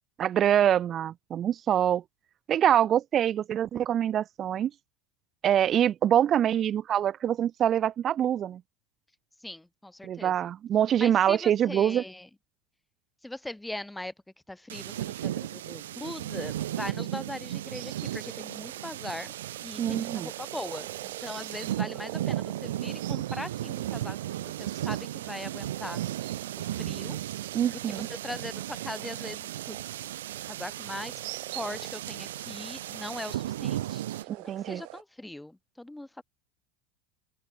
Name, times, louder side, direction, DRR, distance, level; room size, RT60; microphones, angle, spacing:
voice 1, 0.2-2.0 2.5-4.7 5.4-8.6 10.0-12.0 19.8-20.3 27.5-28.1 34.3-34.8, right 10 dB, 35° right, 0.5 m, -25 dB
voice 2, 9.4-10.3 11.0-12.3 13.2-14.1 14.5-19.3 19.6-26.0 26.6-27.2 27.9-29.8 30.4-31.1 31.5-34.0 34.4-36.2, left 1 dB, 5° left, 2.4 m, -40 dB
sound 1, 14.7-34.2, right 13 dB, 85° right, 0.9 m, -35 dB
sound 2, 17.7-35.0, right 37 dB, 65° right, 2.1 m, -45 dB
open air
hypercardioid pair, 105°, 0 cm